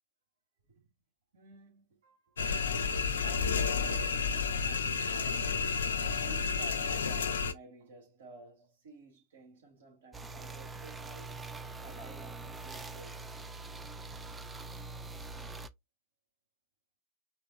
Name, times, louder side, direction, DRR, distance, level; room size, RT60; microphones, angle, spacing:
voice 1, 1.3-2.4 3.2-5.9 6.2-11.4 11.8-13.3, right 2 dB, 65° right, 2.7 m, -53 dB
sound 1, 2.4-7.5, left 5 dB, 65° left, 0.5 m, -31 dB
sound 2, 10.1-15.7, right 3 dB, 10° right, 0.4 m, -44 dB
5.0 x 3.4 x 2.5 m
figure-of-eight pair, 90°, 0 cm